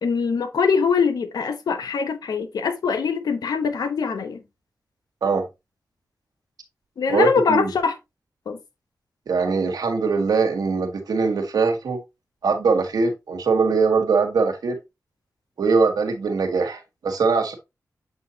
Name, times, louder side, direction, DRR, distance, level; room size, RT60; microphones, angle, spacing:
voice 1, 0.0-4.4 7.0-7.9 8.5-8.6, left 5 dB, 90° left, 1.0 m, -22 dB
voice 2, 7.1-7.7 9.3-12.0 12.4-14.8 15.6-17.6, right 4 dB, 85° right, 1.5 m, -21 dB
7.7 x 4.5 x 2.9 m
cardioid pair, 55°, 6 cm